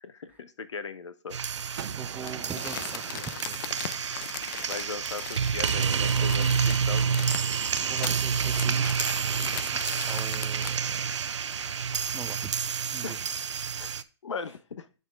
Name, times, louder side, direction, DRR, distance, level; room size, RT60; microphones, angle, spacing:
voice 1, 0.2-1.4 4.7-6.5 6.9-7.0 13.0-13.3 13.8-13.9 14.2-14.9, left 5 dB, 80° left, 0.9 m, -38 dB
sound 1, 1.3-14.0, right 6 dB, 80° right, 0.6 m, -29 dB
Gunshot gunfire, 1.7-4.6 8.0-11.8, right 9 dB, 50° right, 0.9 m, -44 dB
voice 2, 1.8-3.6 4.2-4.3 5.6-7.2 7.8-9.0 9.4-11.0 12.1-12.6 12.9-13.3, right 8 dB, 10° right, 0.5 m, -43 dB
Crumpling crinkling, 2.2-10.9 11.3-11.4, left 10 dB, 45° left, 0.6 m, -39 dB
7.0 x 5.8 x 3.4 m
hypercardioid pair, 135°, 15 cm